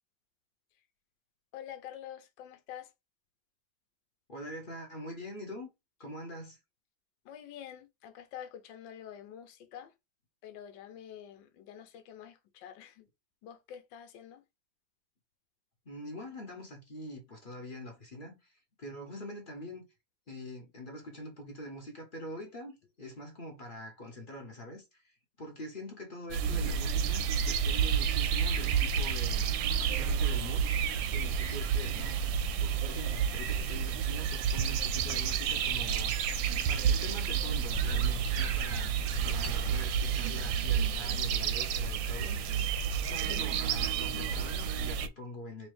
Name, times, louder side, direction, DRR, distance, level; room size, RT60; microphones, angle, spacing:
voice 1, 1.5-2.9 7.2-9.9 10.4-13.1 13.4-14.4, left 10 dB, 75° left, 1.3 m, -47 dB
voice 2, 4.3-5.7 6.0-6.6 15.9-19.8 20.3-25.1 25.4-32.2 32.6-36.3 36.7-42.6 43.1-45.7, left 1 dB, 50° left, 0.6 m, -44 dB
sound 1, 26.3-45.1, right 7 dB, 75° right, 1.2 m, -30 dB
4.2 x 2.7 x 3.1 m
omnidirectional pair, 2.2 m